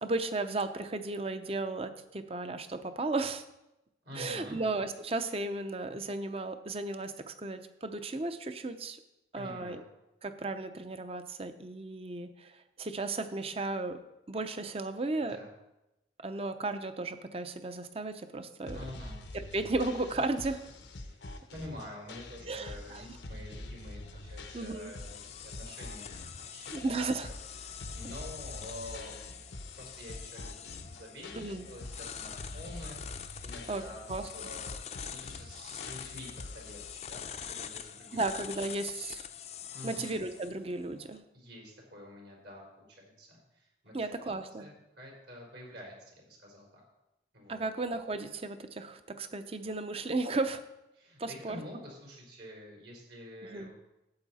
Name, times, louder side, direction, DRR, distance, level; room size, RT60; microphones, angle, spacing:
voice 1, 0.0-3.4 4.1-9.0 9.3-9.8 10.2-14.0 14.3-15.4 16.2-18.8 19.3-20.6 22.5-23.2 24.5-24.9 26.7-27.3 31.3-31.7 33.7-34.3 38.1-39.3 39.8-41.2 43.9-44.7 47.5-50.6 51.2-51.6 53.4-53.7, right 2 dB, 35° right, 9 dB, 0.7 m, -35 dB
voice 2, 4.0-4.6 9.3-9.8 15.2-15.5 18.7-19.2 19.8-19.9 21.0-21.2 21.5-27.4 27.6-29.2 29.8-30.6 30.9-33.0 33.4-34.7 35.0-38.2 39.7-40.1 41.3-43.9 44.2-46.8 47.3-47.7 50.9-53.7, left 1 dB, 75° right, -1 dB, 4.3 m, -48 dB
sound 1, 18.7-36.9, left 2 dB, 90° left, 0.9 m, -46 dB
sound 2, 24.0-41.2, left 8 dB, 35° left, 0.5 m, -45 dB
13.0 x 8.3 x 4.2 m, 0.93 s
head